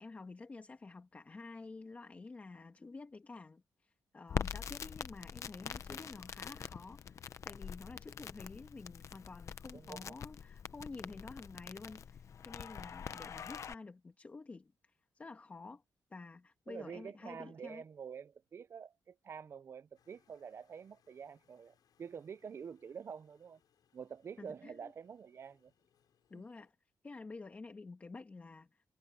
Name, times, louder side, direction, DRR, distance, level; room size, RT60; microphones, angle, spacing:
voice 1, 0.0-15.8 16.1-17.8 24.4-24.9 26.3-26.8 27.0-28.8, left 3 dB, 20° left, 2.0 m, -50 dB
Crackle, 4.3-13.7, left 7 dB, 45° left, 0.8 m, -44 dB
voice 2, 9.7-10.2 16.7-23.6 23.9-25.7 26.3-26.4, right 7 dB, 40° right, 0.5 m, -48 dB
sound 1, 19.9-26.7, left 9 dB, 70° left, 7.0 m, -76 dB
wide cardioid pair, 170°, 7 cm